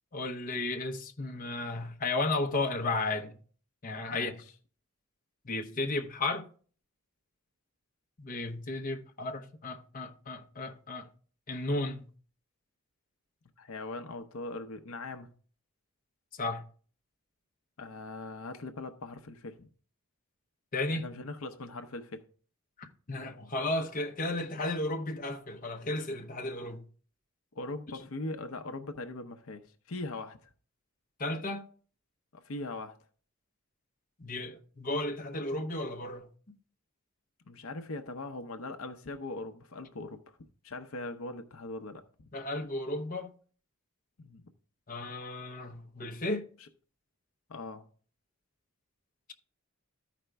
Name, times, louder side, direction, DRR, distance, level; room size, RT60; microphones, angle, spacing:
voice 1, 0.1-3.3 3.8-4.3 5.4-6.4 8.2-11.1 11.5-12.1 16.4-16.6 20.7-21.0 22.8-26.8 31.2-31.6 34.2-36.3 42.3-43.3 44.9-46.5, left 2 dB, 40° left, 0.9 m, -34 dB
voice 2, 13.6-15.3 17.8-19.7 20.9-22.2 27.5-29.6 29.9-30.5 32.3-33.0 37.5-40.4 40.6-42.0 44.2-44.5 46.6-46.7 47.5-47.8, left 2 dB, 70° left, 0.8 m, -40 dB
13.5 x 5.1 x 3.4 m
head